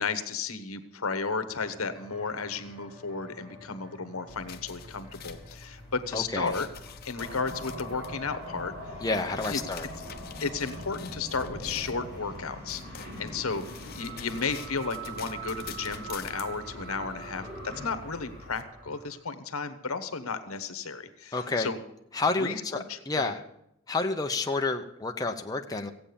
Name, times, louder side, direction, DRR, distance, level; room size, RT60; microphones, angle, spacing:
voice 1, 0.0-6.7 7.0-9.0 9.5-9.6 10.4-13.6 13.9-21.8 22.3-23.3, left 4 dB, 85° left, 11 dB, 1.2 m, -33 dB
sound 1, 1.5-19.1, left 1 dB, 20° right, 5.6 m, -51 dB
Paper cutting, 4.3-18.6, left 6 dB, 45° left, 0.9 m, -47 dB
voice 2, 6.1-6.5 9.0-9.9 21.3-21.7 22.1-23.4 23.9-25.9, left 3 dB, 15° left, 4 dB, 0.7 m, -29 dB
sound 2, 7.2-19.2, right 1 dB, 45° right, 3.8 m, -42 dB
15.0 x 8.8 x 7.0 m, 0.80 s
head